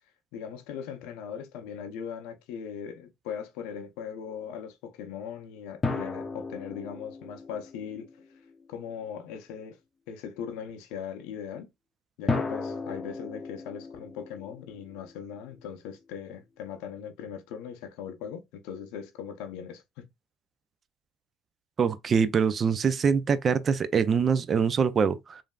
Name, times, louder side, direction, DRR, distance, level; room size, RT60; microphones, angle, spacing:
voice 1, 0.3-8.1 8.7-9.8 10.1-11.7 12.2-20.0, left 8 dB, 80° left, 0.5 m, -39 dB
sound 1, 5.8-8.7 12.3-15.6, left 3 dB, 30° left, 0.6 m, -35 dB
voice 2, 21.8-25.4, right 6 dB, 40° right, 0.4 m, -24 dB
3.1 x 2.5 x 2.3 m
supercardioid pair, 75°, 0 cm